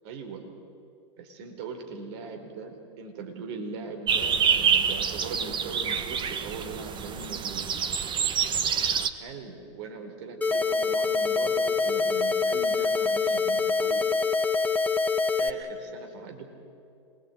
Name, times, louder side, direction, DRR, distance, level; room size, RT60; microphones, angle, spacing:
voice 1, 0.0-0.5 1.2-7.6 9.1-14.1 15.4-16.5, right 4 dB, 60° right, 5 dB, 4.3 m, -40 dB
sound 1, 4.1-9.1, right 7 dB, 30° right, 1.6 m, -26 dB
sound 2, 10.4-15.5, left 4 dB, 10° left, 1.8 m, -25 dB
26.5 x 21.5 x 9.2 m, 2.6 s
hypercardioid pair, 100°, 15 cm